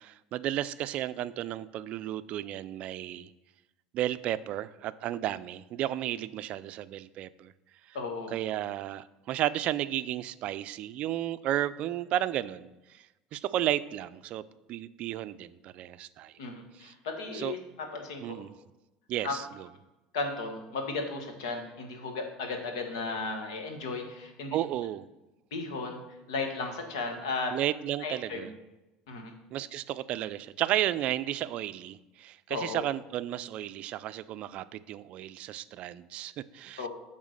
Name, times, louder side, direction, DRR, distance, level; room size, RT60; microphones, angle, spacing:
voice 1, 0.0-3.3 3.9-7.5 7.9-8.0 8.3-13.0 13.3-14.4 14.7-16.3 16.8-16.9 17.3-17.5 18.2-18.5 19.1-19.7 24.5-25.1 27.5-28.5 29.5-36.9, right 13 dB, 55° right, 15 dB, 0.4 m, -33 dB
voice 2, 7.9-8.3 16.4-18.4 19.2-19.3 20.1-24.6 25.5-26.0 26.3-27.5 28.0-28.5 29.1-29.3 32.5-32.8 36.8-36.9, left 3 dB, 85° left, 4 dB, 1.4 m, -35 dB
8.0 x 3.7 x 6.4 m, 1.0 s
supercardioid pair, 95°, 2 cm